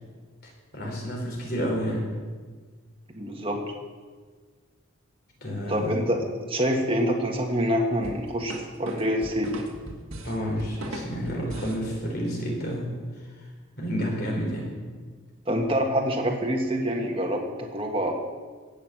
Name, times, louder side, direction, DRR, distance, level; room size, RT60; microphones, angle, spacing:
voice 1, 0.7-2.0 5.4-6.0 10.2-12.9 13.4-13.5 13.8-14.8, equal, 50° left, -1 dB, 4.2 m, -30 dB
voice 2, 3.1-3.6 5.7-6.2 6.5-9.6 15.5-18.1, equal, 25° right, 1 dB, 1.5 m, -26 dB
sound 1, 8.0-11.8, equal, 75° right, 1.9 m, -38 dB
17.0 x 6.6 x 7.6 m, 1.5 s
head